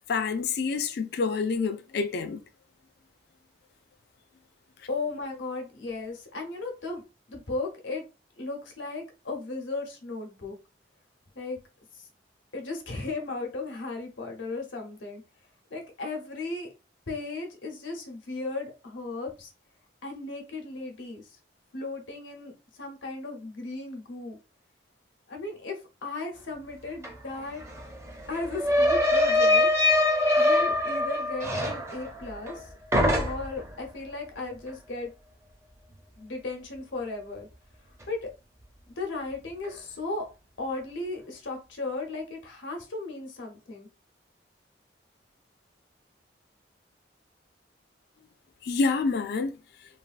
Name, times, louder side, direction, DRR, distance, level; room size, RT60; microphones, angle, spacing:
voice 1, 0.1-2.4 48.6-49.5, left 4 dB, 60° left, 0.3 m, -27 dB
voice 2, 4.9-8.1 8.4-10.6 11.3-11.6 11.9-12.1 12.5-15.2 15.7-16.7 17.1-19.5 20.0-21.3 21.7-24.4 25.3-27.6 28.3-29.7 30.4-32.7 33.2-35.1 36.2-37.5 38.1-38.3 38.9-40.3 40.6-43.9, left 3 dB, 90° left, 0.9 m, -36 dB
sound 1, 27.0-27.1 27.4-32.6 32.9-33.7, left 1 dB, 15° right, 0.5 m, -24 dB
3.3 x 2.3 x 2.4 m
head